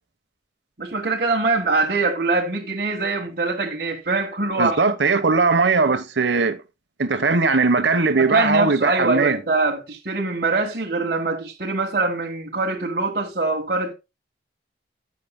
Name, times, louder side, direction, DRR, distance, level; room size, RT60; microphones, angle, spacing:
voice 1, 0.8-4.8 8.1-13.9, right 3 dB, 55° right, 1.5 m, -23 dB
voice 2, 4.6-6.6 7.0-9.4, right 4 dB, 85° right, 1.1 m, -19 dB
12.0 x 8.6 x 2.2 m
head